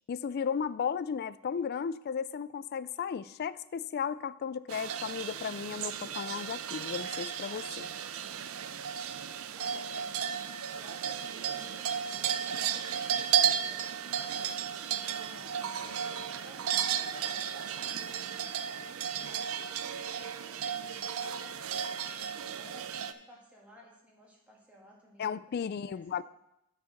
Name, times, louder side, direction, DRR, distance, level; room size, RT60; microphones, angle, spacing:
voice 1, 0.1-7.9 25.2-26.2, left 7 dB, 45° left, 17 dB, 0.3 m, -35 dB
sound 1, 4.7-23.1, right 8 dB, 70° right, 0.5 m, -34 dB
voice 2, 9.5-10.4 10.7-12.8 13.1-14.5 15.2-20.1 20.5-25.6 25.9-26.2, equal, 5° right, -4 dB, 2.1 m, -56 dB
9.3 x 4.8 x 6.5 m, 0.88 s
head